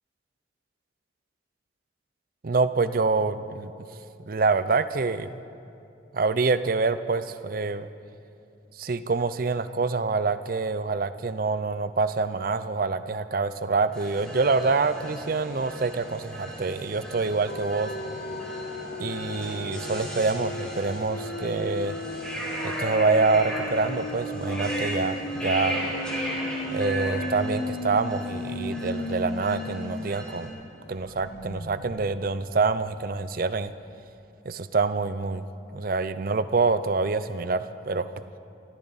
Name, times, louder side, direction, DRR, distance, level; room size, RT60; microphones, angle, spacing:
voice 1, 2.4-3.7 4.2-5.4 6.1-7.9 8.8-17.9 19.0-21.9 22.6-25.8 26.7-30.5 30.9-33.7 34.4-35.4 35.7-38.1, right 4 dB, 50° right, 13 dB, 0.5 m, -26 dB
sound 1, 13.9-30.5, right 1 dB, 5° left, 3.8 m, -36 dB
sound 2, 17.5-29.9 30.3-30.4 30.7-33.4, left 1 dB, 60° left, 0.9 m, -35 dB
24.0 x 14.0 x 4.1 m, 2.6 s
head